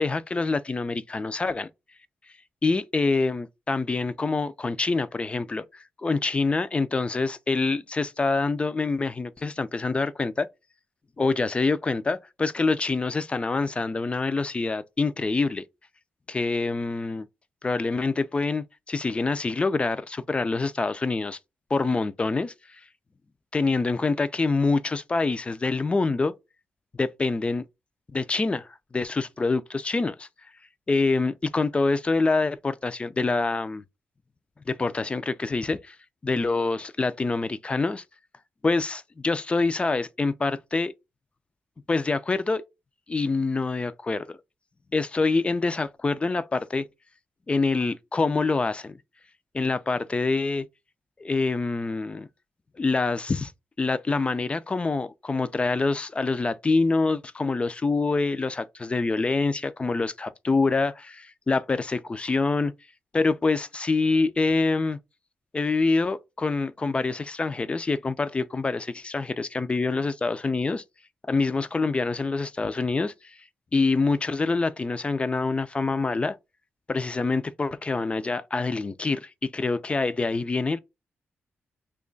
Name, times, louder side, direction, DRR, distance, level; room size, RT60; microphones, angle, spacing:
voice 1, 0.0-1.7 2.6-10.5 11.2-15.6 16.3-17.3 17.6-21.4 21.7-22.5 23.5-26.3 26.9-27.6 28.1-30.3 30.9-33.8 34.7-36.0 36.2-38.0 38.6-40.9 41.9-42.6 43.1-44.4 44.9-46.9 47.5-49.0 49.5-50.6 51.2-52.3 52.8-53.5 53.8-62.7 63.1-65.0 65.5-70.8 71.3-73.1 73.7-76.4 76.9-80.8, left 3 dB, 25° left, 0.4 m, -26 dB
3.0 x 2.3 x 3.8 m
cardioid pair, 90°, 4 cm